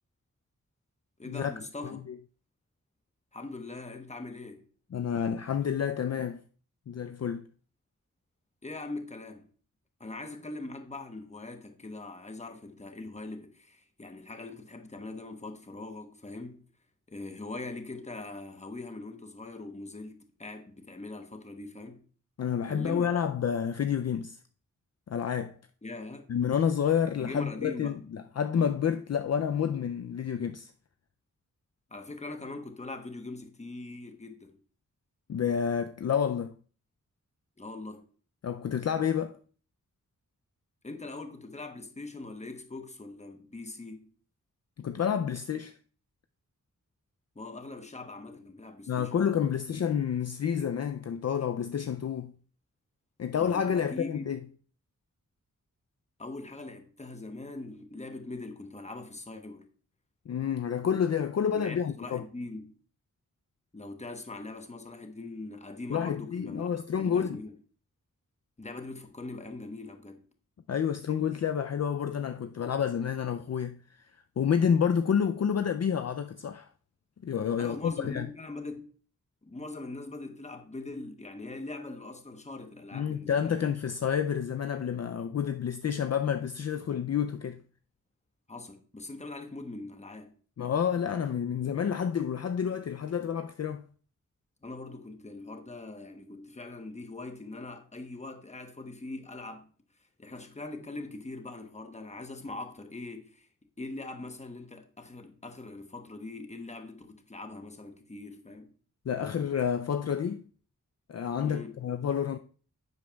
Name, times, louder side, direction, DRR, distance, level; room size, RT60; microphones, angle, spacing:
voice 1, 1.2-2.0 3.3-4.6 8.6-9.5 10.0-16.7 17.1-22.0 22.7-23.1 25.8-26.3 27.2-28.0 31.9-34.6 37.6-38.1 40.8-44.1 47.3-49.1 53.4-54.3 56.2-59.7 61.5-62.7 63.7-67.5 68.6-70.2 77.5-78.9 79.5-83.8 88.5-90.3 94.6-99.7 100.2-103.5 103.8-108.7 111.4-111.8, left 2 dB, 20° left, 1.0 m, -42 dB
voice 2, 4.9-6.4 6.9-7.4 22.4-24.4 25.1-25.6 26.3-30.7 35.3-36.5 38.4-39.4 44.8-45.7 48.9-52.3 53.2-54.4 60.3-62.2 65.9-67.4 70.7-74.0 74.4-76.7 77.2-78.3 82.9-87.6 90.6-93.8 109.1-110.4 111.1-112.4, left 8 dB, 55° left, 0.4 m, -29 dB
10.0 x 8.1 x 2.3 m
wide cardioid pair, 110°, 32 cm